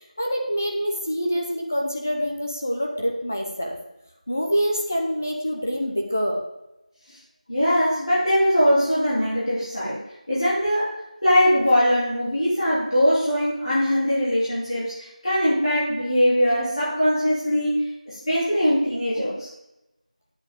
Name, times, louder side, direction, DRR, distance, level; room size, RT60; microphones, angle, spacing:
voice 1, 0.2-3.8 4.3-6.4, equal, 20° left, 0 dB, 0.9 m, -26 dB
voice 2, 7.5-10.0 10.3-19.5, equal, 45° left, -9 dB, 3.1 m, -21 dB
9.8 x 8.3 x 3.7 m, 0.90 s
figure-of-eight pair, 180°, 4 cm